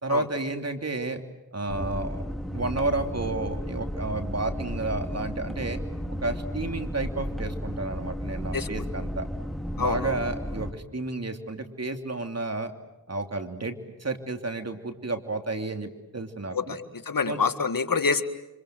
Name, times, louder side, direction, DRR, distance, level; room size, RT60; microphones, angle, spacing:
voice 1, 0.0-1.2 1.5-2.2 2.5-5.8 6.2-9.3 9.8-12.7 13.1-16.8 17.3-17.4, right 2 dB, 45° right, 6 dB, 3.0 m, -31 dB
sound 1, 1.7-10.7, equal, ahead, 2.2 m, -33 dB
voice 2, 9.8-10.2 16.5-18.2, left 5 dB, 70° left, 9 dB, 2.0 m, -27 dB
29.0 x 25.5 x 7.8 m, 0.98 s
cardioid pair, 50°, 35 cm